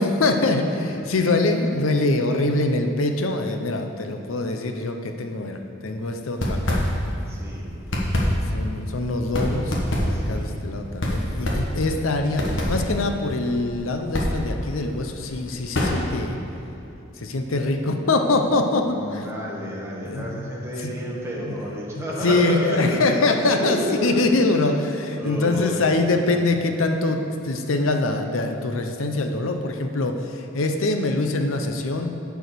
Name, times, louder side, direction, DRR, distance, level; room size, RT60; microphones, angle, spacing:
voice 1, 0.0-6.9 8.5-9.8 10.0-16.4 17.2-19.3 20.1-20.5 20.8-21.0 21.5-21.6 21.9-32.1, left 2 dB, 80° left, 5 dB, 0.7 m, -24 dB
sound 1, 6.2-7.3 7.6-16.3, equal, 65° left, 1.3 m, -26 dB
voice 2, 7.3-7.7 10.1-10.5 18.8-23.0 23.3-24.3 25.1-25.9, equal, 15° right, -5 dB, 1.6 m, -31 dB
10.0 x 4.7 x 6.8 m, 3.0 s
head